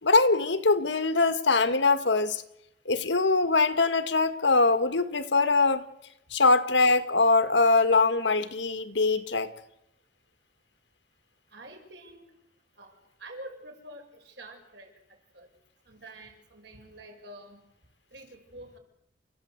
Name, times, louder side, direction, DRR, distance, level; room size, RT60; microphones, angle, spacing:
voice 1, 0.0-2.4 2.9-5.8 6.3-9.5, left 3 dB, 75° left, 1.8 m, -23 dB
voice 2, 11.5-12.3 12.8-14.9 15.3-15.5 15.9-17.6 18.1-18.8, right 1 dB, 65° right, 6.0 m, -47 dB
29.0 x 15.0 x 8.0 m
head